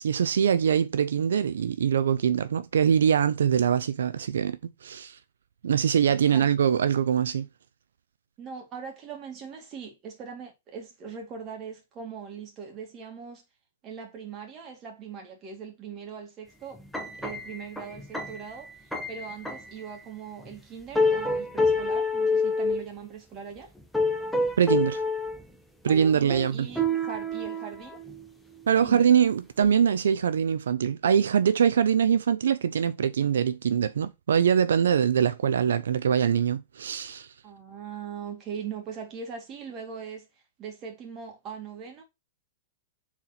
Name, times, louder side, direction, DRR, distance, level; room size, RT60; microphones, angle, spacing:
voice 1, 0.0-5.2 5.6-7.5 24.6-25.0 25.8-26.7 28.7-37.3, right 8 dB, 90° right, 0.5 m, -23 dB
voice 2, 6.1-6.5 8.4-13.4 13.8-16.8 17.2-23.7 25.9-28.0 28.8-29.1 37.4-40.3 40.6-42.0, right 6 dB, 30° right, 2.1 m, -40 dB
sound 1, 16.8-19.8 20.4-20.6 21.0-22.8 23.8-25.4 25.9-28.3 28.7-29.0 29.6-29.7, left 2 dB, ahead, 0.9 m, -28 dB
4.4 x 4.0 x 5.6 m
hypercardioid pair, 140°, 0 cm